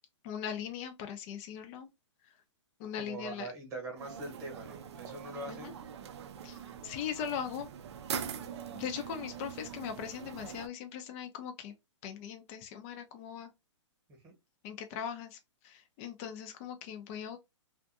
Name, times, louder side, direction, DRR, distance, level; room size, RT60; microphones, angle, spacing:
voice 1, 0.2-1.9 2.2-2.3 2.8-3.5 5.5-5.7 6.4-7.7 8.7-11.7 12.0-13.5 14.6-17.4, left 8 dB, 25° left, 0.4 m, -40 dB
voice 2, 3.0-5.7 14.2-14.3, right 2 dB, 20° right, 1.1 m, -43 dB
sound 1, 4.0-10.7, right 8 dB, 60° right, 0.5 m, -43 dB
2.5 x 2.3 x 2.5 m
hypercardioid pair, 150°, 16 cm